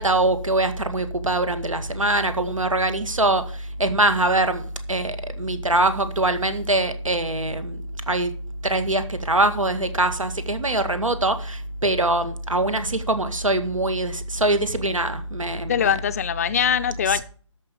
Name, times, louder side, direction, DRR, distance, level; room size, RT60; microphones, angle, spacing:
voice 1, 0.0-7.8 8.1-8.3 8.6-16.0 17.0-17.2, right 2 dB, 80° right, 2.1 m, -23 dB
voice 2, 15.7-17.2, left 9 dB, 30° left, 0.5 m, -22 dB
13.0 x 5.5 x 6.8 m
figure-of-eight pair, 145°, 16 cm